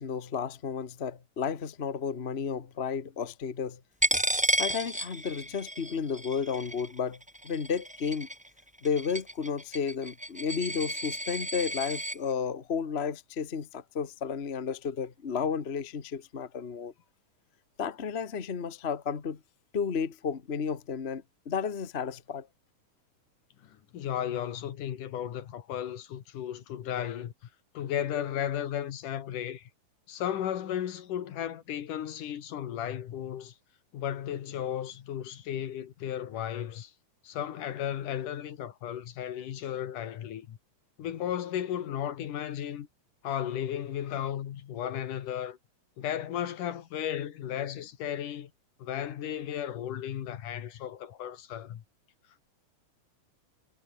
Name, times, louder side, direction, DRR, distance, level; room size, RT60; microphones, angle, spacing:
voice 1, 0.0-3.8 4.6-8.3 8.8-16.9 17.8-19.4 19.7-22.5, left 6 dB, 50° left, 0.7 m, -32 dB
Coin (dropping), 4.0-12.2, right 1 dB, 10° right, 0.4 m, -32 dB
voice 2, 23.6-27.3 27.7-29.7 30.1-33.5 33.9-36.9 37.2-40.6 41.0-42.9 43.2-45.6 46.0-48.5 48.8-51.8, left 10 dB, 70° left, 3.2 m, -34 dB
omnidirectional pair, 3.9 m